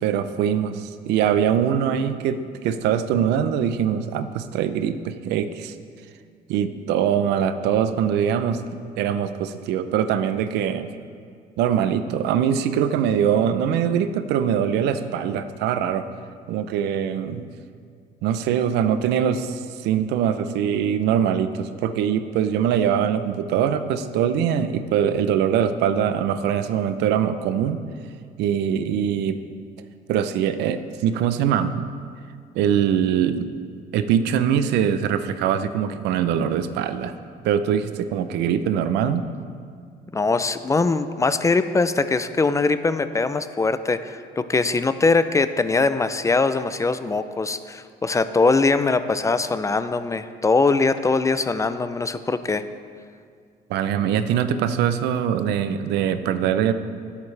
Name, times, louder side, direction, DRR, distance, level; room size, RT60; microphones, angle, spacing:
voice 1, 0.0-5.7 6.5-10.9 11.6-16.0 16.5-17.5 18.2-27.8 28.4-29.4 30.1-31.9 32.5-33.4 33.9-37.1 37.4-39.3 53.7-56.7, right 8 dB, 85° right, 11 dB, 0.6 m, -22 dB
voice 2, 40.1-52.6, left 3 dB, 20° left, 12 dB, 0.4 m, -22 dB
18.0 x 8.3 x 3.3 m, 2.2 s
cardioid pair, 110°, 17 cm